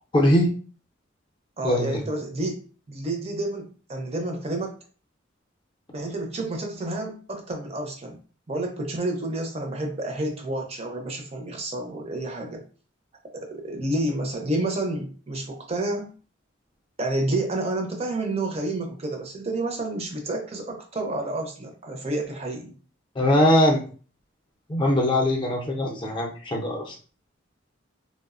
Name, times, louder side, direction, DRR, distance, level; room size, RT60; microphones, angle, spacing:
voice 1, 0.1-0.5 1.6-2.0 23.2-23.8 24.7-26.9, left 1 dB, 25° left, 0 dB, 0.5 m, -21 dB
voice 2, 1.6-2.6 2.9-4.8 5.9-8.2 8.5-12.6 13.3-16.1 17.0-22.7, right 2 dB, 30° right, 2 dB, 0.5 m, -29 dB
3.0 x 2.0 x 2.4 m, 0.39 s
head